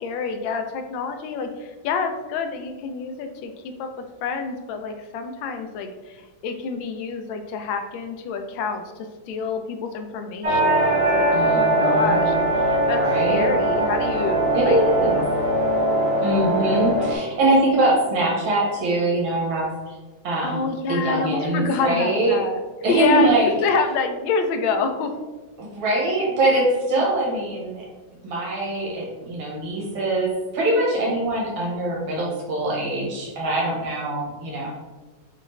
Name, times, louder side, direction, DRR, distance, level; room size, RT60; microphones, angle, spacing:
voice 1, 0.0-3.9 4.2-13.0 13.3-15.2 20.4-22.6 22.9-25.1, left 5 dB, 80° left, 6 dB, 1.3 m, -27 dB
sound 1, 10.4-17.2, right 1 dB, 45° right, 0.4 m, -21 dB
voice 2, 11.3-12.2 13.0-13.4 14.5-15.2 16.2-19.9 20.2-22.4 22.8-23.5 25.7-27.9 28.2-34.7, right 2 dB, 85° right, -4 dB, 2.0 m, -23 dB
5.9 x 2.5 x 3.2 m, 1.2 s
omnidirectional pair, 2.1 m